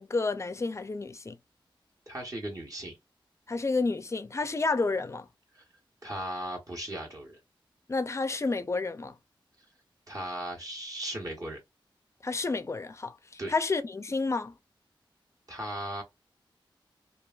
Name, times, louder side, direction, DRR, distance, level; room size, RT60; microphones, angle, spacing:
voice 1, 0.0-1.4 3.5-5.3 7.9-9.1 12.2-13.1 13.5-14.5, left 3 dB, 30° left, 0.4 m, -30 dB
voice 2, 2.1-3.0 5.5-5.6 6.0-7.4 10.1-11.6 13.4-13.5 15.5-16.0, right 1 dB, 40° right, 1.0 m, -37 dB
3.1 x 2.4 x 2.2 m
wide cardioid pair, 115°, 9 cm